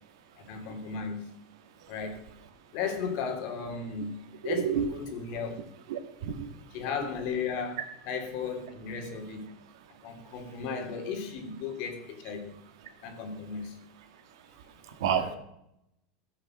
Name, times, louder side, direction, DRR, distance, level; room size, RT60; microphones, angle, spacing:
voice 1, 0.4-1.3 1.9-2.2 2.7-4.2 4.4-5.6 6.7-7.8 8.1-9.5 10.0-12.5 13.0-13.8 15.1-15.4, left 6 dB, 55° left, 2.9 m, -35 dB
voice 2, 4.4-4.9 5.9-6.5 15.0-15.4, right 8 dB, 80° right, 2.0 m, -29 dB
15.5 x 6.6 x 6.3 m
supercardioid pair, 130°, 3 cm